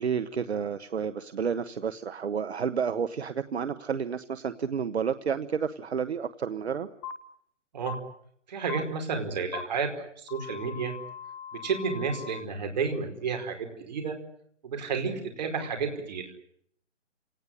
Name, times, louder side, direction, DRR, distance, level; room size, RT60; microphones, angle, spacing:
voice 1, 0.0-6.9, right 6 dB, 60° right, 12 dB, 1.3 m, -30 dB
sound 1, 7.0-7.1 7.9-8.0 8.7-8.8 9.5-9.6 10.3-12.4, left 9 dB, 15° left, 1.4 m, -40 dB
voice 2, 8.5-9.9 10.2-10.9 11.6-14.2 14.6-16.3, right 5 dB, 35° right, 4 dB, 4.9 m, -31 dB
30.0 x 19.0 x 10.0 m, 0.68 s
hypercardioid pair, 165°, 36 cm